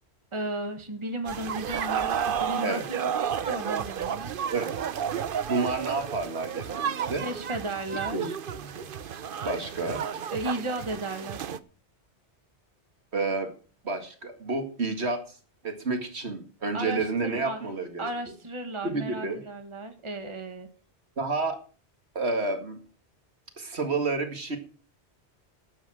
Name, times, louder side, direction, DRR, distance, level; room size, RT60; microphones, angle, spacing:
voice 1, 0.3-3.1 3.5-4.3 7.2-8.4 10.3-11.5 16.7-17.6 18.0-20.7, right 1 dB, 25° right, 6 dB, 1.7 m, -34 dB
sound 1, 1.3-11.6, right 8 dB, 55° right, 0.9 m, -32 dB
voice 2, 5.5-7.2 8.1-8.9 9.4-10.0 13.1-13.5 13.8-15.4 15.6-18.1 18.8-19.4 21.2-21.6 22.1-22.8 23.6-24.6, right 3 dB, 75° right, 6 dB, 2.3 m, -30 dB
12.5 x 8.9 x 6.4 m, 0.40 s
omnidirectional pair, 1.1 m